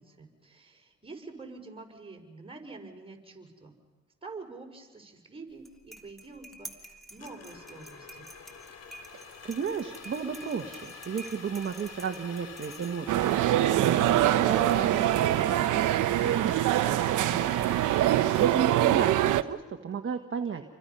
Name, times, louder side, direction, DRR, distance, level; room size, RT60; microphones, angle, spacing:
voice 1, 0.0-3.8 4.2-8.3, right 3 dB, 20° right, 1 dB, 5.1 m, -47 dB
sound 1, 5.5-13.2, right 1 dB, ahead, 3.0 m, -49 dB
sound 2, 7.2-18.5, left 5 dB, 55° left, 3.0 m, -46 dB
voice 2, 9.1-17.6 18.0-20.6, right 6 dB, 40° right, 4 dB, 1.4 m, -34 dB
sound 3, 13.1-19.4, right 13 dB, 80° right, 0.8 m, -24 dB
29.5 x 24.0 x 5.6 m, 1.2 s
cardioid pair, 90°, 30 cm